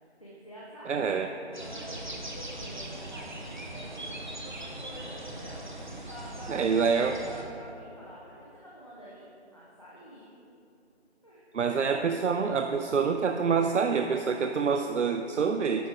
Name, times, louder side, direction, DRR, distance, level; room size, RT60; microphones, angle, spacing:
voice 1, 0.2-9.2 9.5-10.3 11.2-12.1, equal, 30° left, -7 dB, 0.8 m, -48 dB
voice 2, 0.9-1.3 6.5-7.2 11.5-15.9, right 5 dB, 90° right, 6 dB, 0.5 m, -26 dB
sound 1, 1.5-7.4, right 1 dB, 40° right, 0.8 m, -40 dB
9.9 x 5.1 x 3.6 m, 2.6 s
figure-of-eight pair, 170°, 35 cm